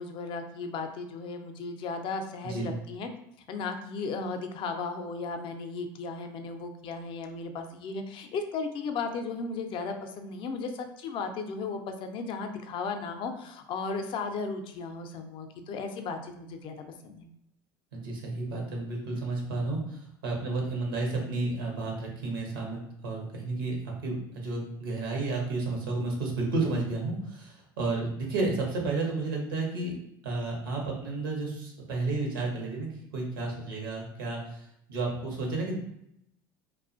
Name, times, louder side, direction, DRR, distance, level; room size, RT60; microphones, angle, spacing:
voice 1, 0.0-3.1 3.5-17.3, left 4 dB, 50° left, 6 dB, 0.4 m, -35 dB
voice 2, 17.9-23.8 24.0-29.9 30.2-35.8, right 3 dB, 85° right, 0 dB, 0.7 m, -32 dB
2.3 x 2.1 x 2.5 m, 0.76 s
hypercardioid pair, 75°, 11 cm